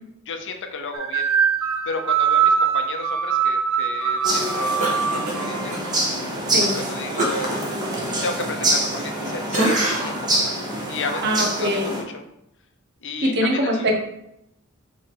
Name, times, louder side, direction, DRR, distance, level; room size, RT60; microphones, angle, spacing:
voice 1, 0.3-1.3 1.9-5.8 6.6-7.6 8.2-10.6 10.9-12.0 13.0-13.9, left 3 dB, 60° left, 6 dB, 0.7 m, -33 dB
sound 1, 0.9-6.0, right 7 dB, 75° right, 0.7 m, -22 dB
sound 2, 4.2-12.0, right 1 dB, 20° right, 1.1 m, -26 dB
Cough, 4.8-5.8 6.2-6.4 7.2-9.2 9.5-10.2 10.7-10.9, right 1 dB, 35° right, 1.7 m, -26 dB
voice 2, 11.2-11.9 13.2-14.0, equal, 50° right, 2 dB, 1.0 m, -22 dB
5.3 x 3.2 x 5.5 m, 0.80 s
head